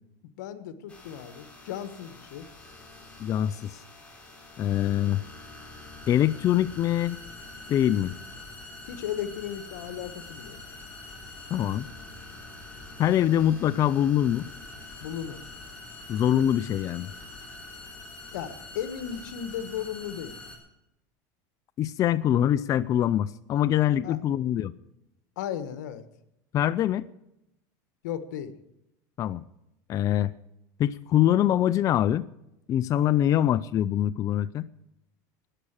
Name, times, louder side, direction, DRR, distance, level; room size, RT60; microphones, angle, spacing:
voice 1, 0.4-2.4 8.9-10.6 15.0-15.4 18.3-20.4 24.0-24.2 25.4-26.0 28.0-28.5, left 9 dB, 90° left, 12 dB, 1.3 m, -35 dB
sound 1, 0.9-20.6, left 2 dB, 15° left, 4.1 m, -45 dB
voice 2, 3.2-3.8 4.6-5.2 6.1-7.2 7.7-8.1 11.5-11.9 13.0-14.5 16.1-17.1 21.8-24.7 26.5-27.1 29.2-29.4 29.9-30.3 30.8-32.3 32.7-34.7, left 11 dB, 35° left, 14 dB, 0.5 m, -24 dB
13.5 x 9.7 x 7.4 m, 0.84 s
supercardioid pair, 130°, 10 cm